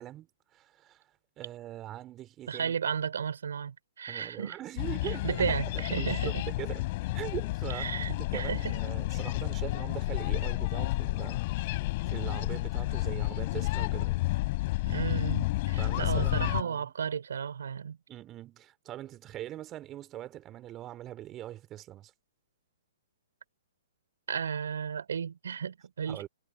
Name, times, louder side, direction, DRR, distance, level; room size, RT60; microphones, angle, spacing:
voice 1, 0.0-2.8 4.1-6.8 7.1-11.4 12.1-14.2 15.8-16.9 18.1-22.1 26.1-26.3, right 13 dB, 25° right, 3.0 m, -42 dB
voice 2, 2.5-4.6 5.0-6.5 7.7-8.7 14.8-18.0 24.3-26.2, right 7 dB, 70° right, 5.6 m, -34 dB
sound 1, 4.8-16.6, left 20 dB, 45° left, 3.9 m, -31 dB
figure-of-eight pair, 120°, 0 cm